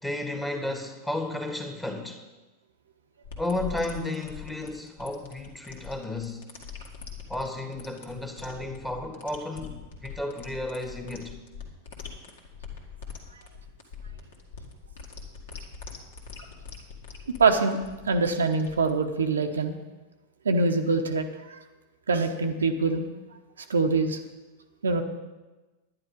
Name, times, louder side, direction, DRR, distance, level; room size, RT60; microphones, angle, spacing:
voice 1, 0.0-2.2 3.4-6.5 7.3-11.3, left 2 dB, 5° left, 4 dB, 1.7 m, -33 dB
sound 1, 3.2-19.4, left 6 dB, 60° left, 2.0 m, -42 dB
voice 2, 17.4-17.8 18.0-19.7 20.4-21.6 22.1-23.0 23.7-24.2 24.8-25.0, right 4 dB, 70° right, 5 dB, 0.9 m, -24 dB
11.0 x 10.5 x 5.3 m, 1.2 s
figure-of-eight pair, 90°, 0 cm